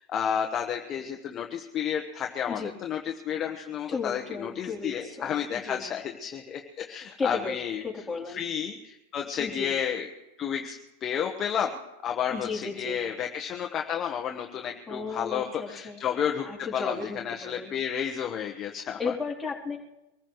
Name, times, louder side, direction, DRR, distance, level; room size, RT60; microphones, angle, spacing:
voice 1, 0.0-7.8 8.3-10.1 10.4-19.0, left 8 dB, 30° left, 2 dB, 1.2 m, -31 dB
voice 2, 3.9-5.8 7.2-7.6 7.8-8.4 9.4-9.7 12.3-13.0 14.6-16.0 16.4-17.7 19.0-19.8, left 4 dB, 10° left, -4 dB, 3.5 m, -35 dB
25.0 x 15.0 x 3.2 m, 0.99 s
supercardioid pair, 135°, 0 cm